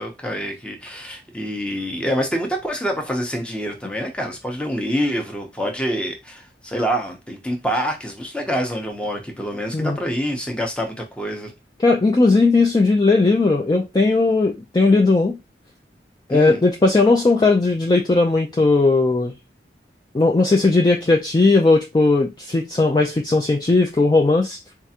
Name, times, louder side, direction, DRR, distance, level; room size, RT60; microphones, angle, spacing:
voice 1, 0.0-11.5 16.3-16.6, equal, 5° left, 0.7 m, -26 dB
voice 2, 11.8-15.4 16.3-19.3 20.1-24.6, left 3 dB, 25° left, 0.3 m, -17 dB
4.6 x 2.4 x 2.7 m
head